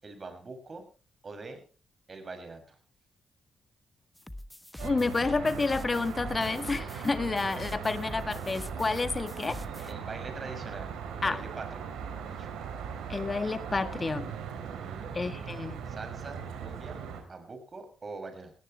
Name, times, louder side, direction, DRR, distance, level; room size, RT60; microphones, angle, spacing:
voice 1, 0.0-0.8 1.2-1.6 2.1-2.8 9.9-12.6 14.6-15.2 15.8-17.0 17.2-18.5, right 3 dB, 40° right, 6.1 m, -44 dB
sound 1, 4.2-9.9, left 1 dB, 10° left, 1.3 m, -44 dB
voice 2, 4.8-9.9 11.2-11.4 13.1-14.3 15.1-15.9, left 3 dB, 30° left, 1.7 m, -30 dB
Traffic noise roadway noise, 4.8-17.2, right 7 dB, 85° right, 3.7 m, -39 dB
18.0 x 17.5 x 3.2 m
cardioid pair, 70°, 0 cm